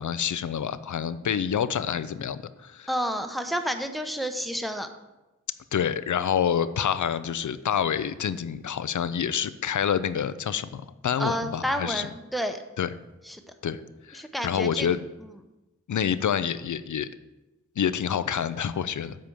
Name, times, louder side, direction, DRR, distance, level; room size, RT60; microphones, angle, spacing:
voice 1, 0.0-2.9 5.7-12.1 12.8-12.9 13.6-13.8 14.1-15.0 15.9-17.1 17.8-19.2, left 8 dB, 80° left, 14 dB, 0.5 m, -27 dB
voice 2, 2.9-4.9 11.2-12.6 13.2-13.4 14.1-14.9, equal, ahead, 6 dB, 0.8 m, -30 dB
7.7 x 5.0 x 7.2 m, 1.0 s
wide cardioid pair, 70°, 29 cm